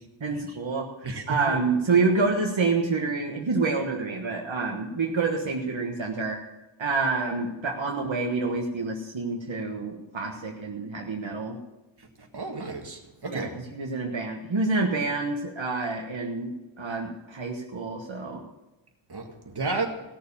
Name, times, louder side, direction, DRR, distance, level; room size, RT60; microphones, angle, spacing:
voice 1, 0.2-6.4 6.8-11.6 13.2-18.4, right 3 dB, 80° right, 0 dB, 1.5 m, -28 dB
voice 2, 1.0-1.6 12.3-13.5 19.1-20.0, right 3 dB, 55° right, 3 dB, 2.0 m, -32 dB
17.0 x 7.0 x 7.1 m, 1.1 s
wide cardioid pair, 75°, 45 cm